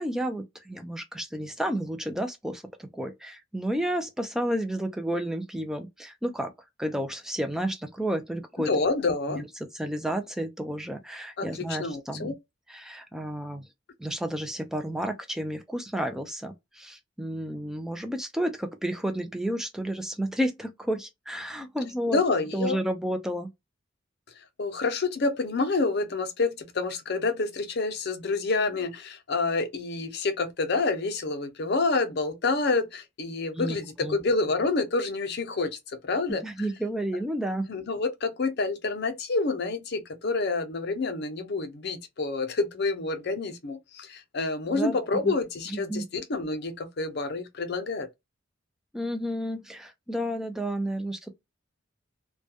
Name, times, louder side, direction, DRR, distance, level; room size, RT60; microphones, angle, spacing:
voice 1, 0.0-6.5 6.8-8.7 9.3-9.5 9.7-12.3 12.7-13.6 14.0-22.2 22.5-23.5 33.5-34.2 36.4-37.6 44.7-45.0 45.2-45.3 45.7-46.1 48.9-51.3, right 1 dB, ahead, 0.4 m, -31 dB
voice 2, 8.7-9.5 11.4-12.4 22.1-22.8 24.6-36.4 37.7-48.1, left 3 dB, 55° left, 0.6 m, -28 dB
2.2 x 2.2 x 2.7 m
head